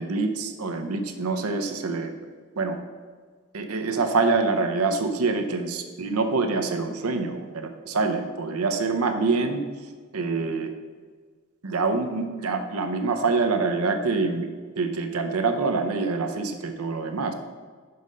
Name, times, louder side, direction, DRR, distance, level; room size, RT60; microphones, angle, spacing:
voice 1, 0.0-2.1 2.6-2.8 3.5-9.6 10.1-10.7 11.6-14.5 14.8-17.3, right 3 dB, 85° right, 6 dB, 0.7 m, -25 dB
5.6 x 5.4 x 6.3 m, 1.5 s
head